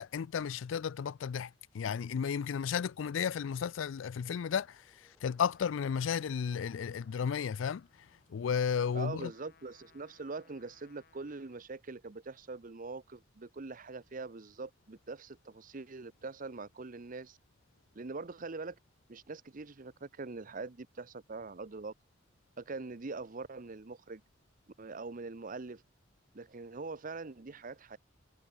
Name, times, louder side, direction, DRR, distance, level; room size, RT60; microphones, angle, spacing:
voice 1, 0.0-1.5 1.7-4.7 5.2-7.8 8.3-9.3, left 7 dB, 85° left, 0.4 m, -33 dB
sound 1, 3.5-11.2 16.4-17.3, equal, 5° left, 5.3 m, -73 dB
Trumpet, 5.5-11.8, left 5 dB, 55° left, 2.2 m, -67 dB
voice 2, 8.9-17.4 17.9-18.8 19.1-21.9 22.6-24.2 24.8-25.8 26.3-28.0, right 3 dB, 45° right, 0.8 m, -43 dB
head